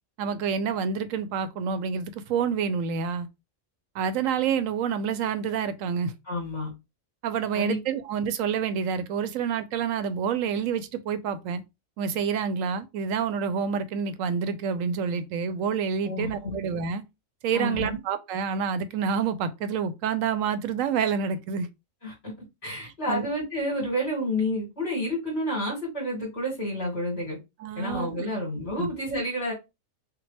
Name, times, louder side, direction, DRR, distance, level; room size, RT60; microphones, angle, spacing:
voice 1, 0.2-3.3 3.9-6.1 7.2-11.6 12.0-17.0 17.4-21.7 23.1-23.3 27.6-28.3 28.8-28.9, right 6 dB, 85° right, 1.0 m, -28 dB
voice 2, 6.3-6.7 7.5-7.8 16.0-16.6 17.5-18.0 22.0-22.3 22.6-27.4 27.8-29.5, left 1 dB, 50° left, 2.6 m, -30 dB
5.7 x 2.1 x 3.3 m
omnidirectional pair, 1.4 m